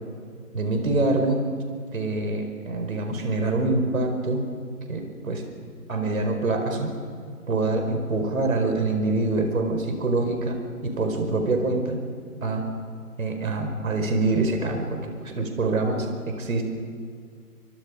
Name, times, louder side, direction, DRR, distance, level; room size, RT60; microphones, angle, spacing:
voice 1, 0.5-1.4 1.9-4.4 4.9-5.4 5.9-6.9 7.5-10.6 11.0-12.0 12.4-12.7 13.2-16.6, right 2 dB, 60° right, 4 dB, 5.0 m, -25 dB
29.0 x 27.0 x 5.2 m, 2.1 s
figure-of-eight pair, 150°, 46 cm